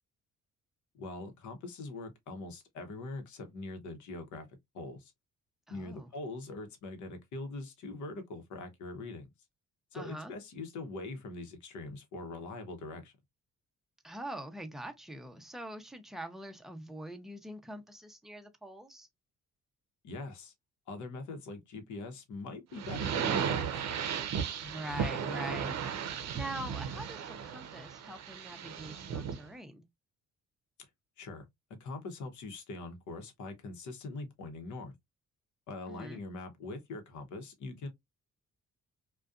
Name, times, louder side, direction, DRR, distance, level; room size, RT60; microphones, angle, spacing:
voice 1, 0.9-4.5 4.7-5.1 5.7-9.3 9.9-13.1 20.0-20.5 20.9-23.8 30.8-30.9 31.2-31.5 31.8-34.9 35.7-37.9, left 2 dB, 70° left, 0.9 m, -42 dB
voice 2, 5.7-6.1 9.9-10.3 14.0-19.1 24.6-25.8 26.2-29.8 35.9-36.2, right 1 dB, ahead, 0.5 m, -43 dB
sound 1, 22.8-29.4, right 7 dB, 60° right, 0.6 m, -35 dB
2.5 x 2.2 x 2.3 m
cardioid pair, 90°, 30 cm